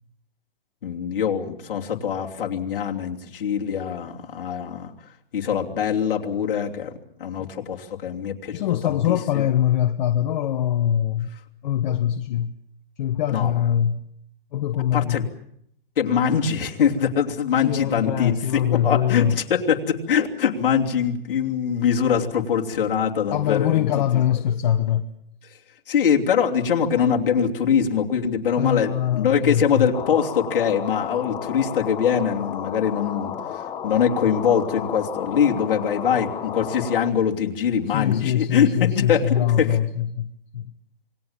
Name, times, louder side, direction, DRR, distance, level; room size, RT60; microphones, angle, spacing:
voice 1, 0.8-4.9 5.3-6.9 7.2-9.4 13.3-13.6 14.9-15.3 16.0-23.9 25.5-25.6 25.9-39.8, left 7 dB, 65° left, 3.0 m, -23 dB
voice 2, 8.5-11.3 11.6-12.5 13.0-14.0 14.5-15.3 17.6-19.4 23.3-25.1 28.6-29.9 37.9-40.7, left 10 dB, 50° left, 1.3 m, -23 dB
sound 1, 29.9-37.1, left 8 dB, 15° left, 1.4 m, -33 dB
27.5 x 20.0 x 7.3 m
hypercardioid pair, 140°, 29 cm